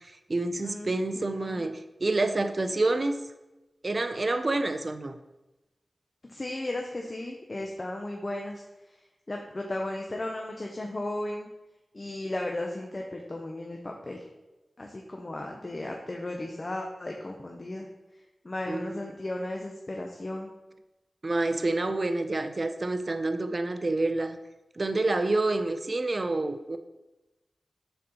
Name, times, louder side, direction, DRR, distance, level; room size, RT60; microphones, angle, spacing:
voice 1, 0.0-3.3 3.8-5.2 18.7-19.1 21.2-24.4 24.8-26.8, right 2 dB, 45° right, 8 dB, 0.5 m, -28 dB
voice 2, 1.1-1.7 6.3-8.6 9.3-11.5 11.9-14.2 14.8-17.9 18.4-20.5, left 1 dB, 40° left, 1 dB, 0.7 m, -35 dB
6.5 x 4.2 x 4.1 m, 1.0 s
wide cardioid pair, 70°, 0 cm